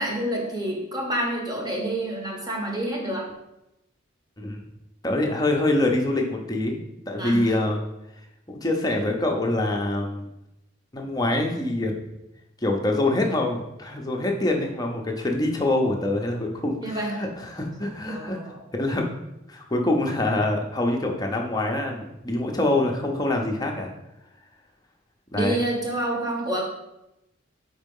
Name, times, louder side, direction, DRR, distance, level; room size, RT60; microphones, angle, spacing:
voice 1, 0.0-3.3 7.2-7.6 16.8-17.2 18.1-18.6 25.3-26.6, right 1 dB, 20° right, -1 dB, 1.2 m, -28 dB
voice 2, 5.0-6.8 7.1-7.8 8.5-10.3 10.9-11.9 12.6-19.1 19.5-23.9 25.3-25.6, left 2 dB, 20° left, 1 dB, 0.8 m, -25 dB
4.6 x 4.3 x 5.3 m, 0.89 s
head